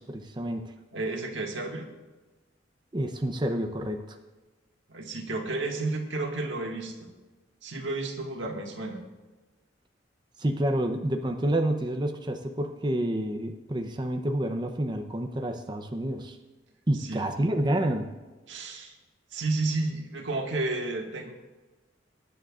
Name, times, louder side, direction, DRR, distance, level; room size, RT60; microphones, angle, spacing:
voice 1, 0.1-0.6 2.9-4.2 10.4-16.4 16.9-18.1, right 1 dB, 25° right, 4 dB, 0.7 m, -28 dB
voice 2, 0.9-1.9 4.9-7.1 7.6-9.0 16.9-17.2 18.5-19.0 19.3-21.3, right 2 dB, 85° right, 1 dB, 1.8 m, -32 dB
22.0 x 10.0 x 2.5 m, 1.2 s
head